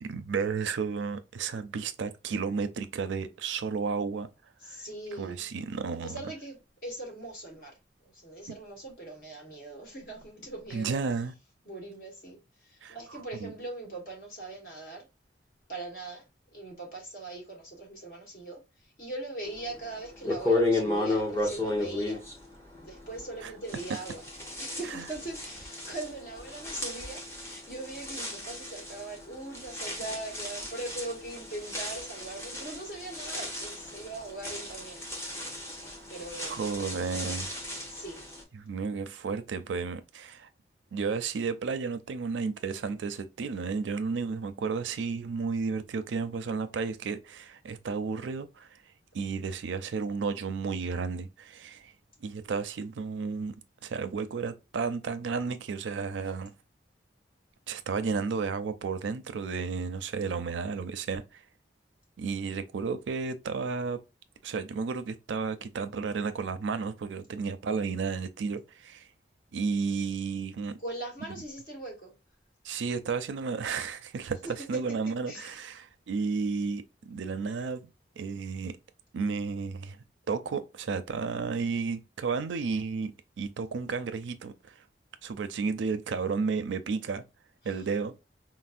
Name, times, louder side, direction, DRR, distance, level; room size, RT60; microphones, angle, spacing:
voice 1, 0.0-4.3 4.7-4.8 5.2-6.2 8.5-8.6 10.7-11.3 12.8-13.5 23.4-23.5 24.9-25.1 36.4-37.6 38.5-40.5 40.9-48.8 49.1-51.9 52.2-53.5 53.8-56.5 57.7-61.4 62.2-64.0 64.4-69.1 69.5-70.8 72.6-77.9 78.2-78.8 79.1-80.0 80.3-83.1 83.4-84.7 85.2-87.2 87.6-88.1, right 5 dB, 85° right, 0.4 m, -32 dB
voice 2, 4.6-5.4 6.0-6.6 6.8-7.8 8.0-11.0 11.6-15.1 15.7-16.2 16.5-22.2 22.8-24.2 24.6-35.0 36.1-36.6 37.9-38.2 56.2-56.3 70.8-72.1 75.3-75.6 87.6-87.8, right 2 dB, 50° left, 1.4 m, -41 dB
sound 1, 19.7-19.8 20.2-23.4 23.7-38.4, left 2 dB, 15° left, 0.8 m, -34 dB
4.1 x 2.0 x 2.4 m
head